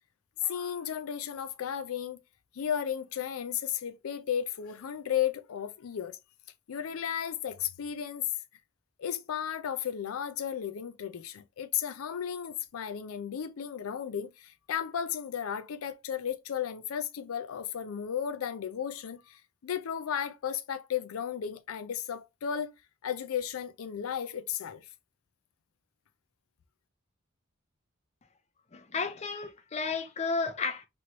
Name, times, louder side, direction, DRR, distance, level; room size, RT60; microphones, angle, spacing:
voice 1, 0.4-2.2 2.5-6.2 6.7-8.3 9.0-22.7 23.0-24.9, left 9 dB, 85° left, 0.4 m, -34 dB
voice 2, 28.7-30.9, left 4 dB, 30° left, 0.5 m, -32 dB
3.1 x 3.0 x 2.5 m
head